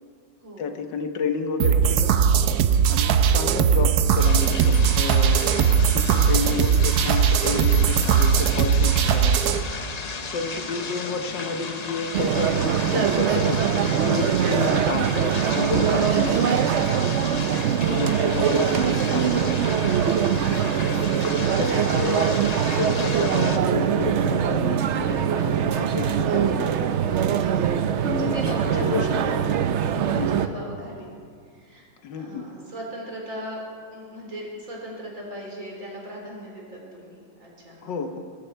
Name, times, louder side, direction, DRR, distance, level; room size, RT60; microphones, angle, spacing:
voice 1, 0.6-2.2 2.9-5.5 5.9-9.4 9.8-10.0 10.3-17.0 17.9-19.6 20.4-26.9 28.0-29.1 30.1-30.5 32.0-32.5 37.8-38.2, left 5 dB, 75° left, 6 dB, 1.6 m, -31 dB
sound 1, 1.6-9.6, right 7 dB, 65° right, 1.1 m, -19 dB
sound 2, 4.2-23.6, left 4 dB, 50° left, 0.4 m, -34 dB
sound 3, 12.1-30.5, right 8 dB, 80° right, 0.6 m, -23 dB
voice 2, 27.9-31.1 31.5-31.8 32.2-33.6 33.9-38.0, equal, 45° right, -3 dB, 4.1 m, -38 dB
19.5 x 13.5 x 4.5 m, 2.1 s
omnidirectional pair, 2.0 m